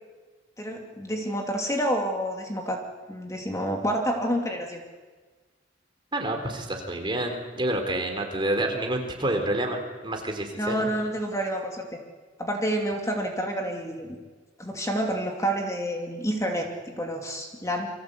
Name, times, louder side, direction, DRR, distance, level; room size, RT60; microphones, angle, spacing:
voice 1, 0.6-2.8 3.1-4.8 10.6-11.9 12.4-14.2 14.6-17.9, equal, 15° left, 2 dB, 2.7 m, -28 dB
voice 2, 6.1-10.9, right 1 dB, 25° right, 3 dB, 4.1 m, -28 dB
29.0 x 24.5 x 8.3 m, 1.4 s
head